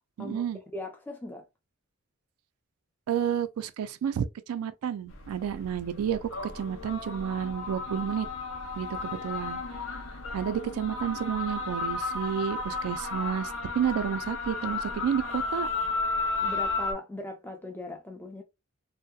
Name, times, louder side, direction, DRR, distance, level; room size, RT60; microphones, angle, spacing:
voice 1, 0.2-0.6 3.1-6.3 6.5-8.3 8.8-9.6 10.3-15.7, right 8 dB, 90° right, 0.3 m, -30 dB
voice 2, 0.7-1.5 16.4-18.4, left 1 dB, 10° left, 0.4 m, -39 dB
sound 1, 5.1-16.9, left 3 dB, 75° left, 0.5 m, -33 dB
2.7 x 2.1 x 2.2 m
head